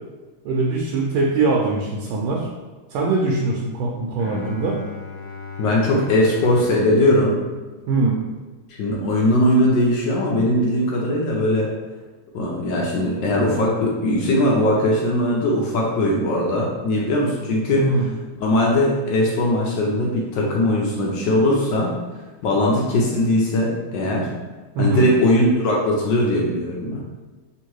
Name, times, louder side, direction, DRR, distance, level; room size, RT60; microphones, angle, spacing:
voice 1, 0.4-2.5 2.9-4.8 7.9-8.2 17.8-18.1 24.7-25.1, right 3 dB, 80° right, -1 dB, 1.4 m, -22 dB
Bowed string instrument, 4.2-8.3, left 4 dB, 90° left, 1.6 m, -37 dB
voice 2, 5.6-7.4 8.7-11.7 12.3-17.9 18.4-21.9 22.4-24.3 24.8-27.0, left 1 dB, 65° left, -3 dB, 1.3 m, -20 dB
3.6 x 2.9 x 4.5 m, 1.3 s
omnidirectional pair, 2.4 m